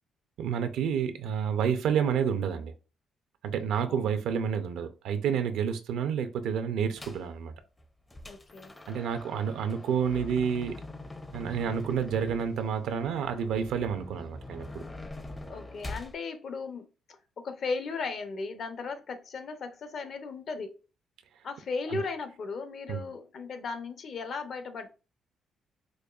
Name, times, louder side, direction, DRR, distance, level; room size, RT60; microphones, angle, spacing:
voice 1, 0.4-2.7 3.4-7.5 8.9-10.7 11.3-14.8 21.9-22.0 22.9-23.0, right 7 dB, 85° right, 0.5 m, -29 dB
sound 1, 7.0-7.3 7.8-16.2, left 2 dB, 20° left, 0.5 m, -44 dB
voice 2, 8.3-8.7 15.5-20.8 21.4-24.9, left 4 dB, 60° left, 0.6 m, -36 dB
5.0 x 2.2 x 2.4 m
cardioid pair, 90°, 0 cm